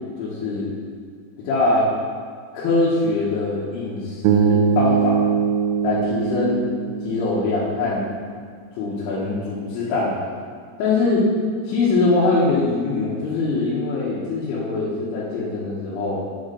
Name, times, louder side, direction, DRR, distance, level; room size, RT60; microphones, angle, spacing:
voice 1, 0.2-0.7 1.4-1.9 2.5-5.2 5.8-6.6 7.0-8.1 8.8-10.3 10.8-11.3 11.7-16.2, left 3 dB, 80° left, -8 dB, 3.8 m, -22 dB
Bass guitar, 4.2-8.3, right 7 dB, 85° right, 2.4 m, -22 dB
8.4 x 4.9 x 6.4 m, 2.1 s
omnidirectional pair, 5.4 m